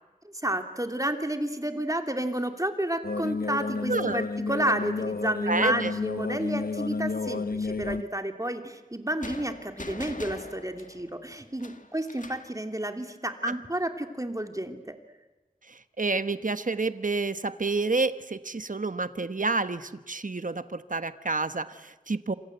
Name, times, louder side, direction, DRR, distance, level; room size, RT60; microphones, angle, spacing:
voice 1, 0.2-15.0, right 1 dB, 20° right, 6 dB, 3.0 m, -31 dB
sound 1, 3.0-8.0, left 3 dB, 85° left, 0.9 m, -31 dB
voice 2, 3.9-4.2 5.5-5.9 13.4-13.5 15.7-22.3, right 3 dB, 60° right, 12 dB, 1.2 m, -29 dB
sound 2, 9.2-12.6, left 2 dB, 60° left, 2.0 m, -42 dB
27.5 x 26.5 x 8.0 m, 1.1 s
wide cardioid pair, 40°, 15 cm